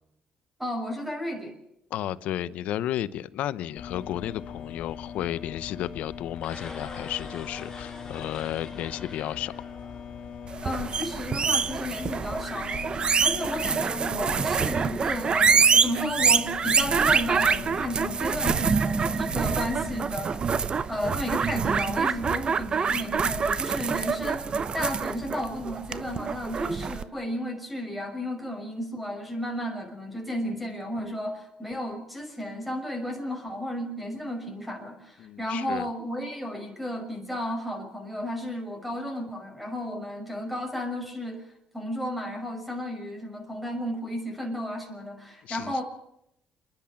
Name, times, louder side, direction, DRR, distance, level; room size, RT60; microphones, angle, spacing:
voice 1, 0.6-1.5 10.6-12.9 13.2-20.5 20.9-45.8, left 1 dB, 5° right, 3 dB, 6.1 m, -33 dB
voice 2, 1.9-9.5 35.2-35.9 45.4-45.8, left 12 dB, 80° left, 16 dB, 0.8 m, -33 dB
sound 1, 3.8-20.0, left 7 dB, 65° left, 3.5 m, -41 dB
sound 2, 6.4-10.5, left 3 dB, 25° left, 5.2 m, -44 dB
sound 3, 10.5-27.0, right 6 dB, 45° right, 0.9 m, -26 dB
28.5 x 11.0 x 8.7 m, 0.78 s
cardioid pair, 80°, 2 cm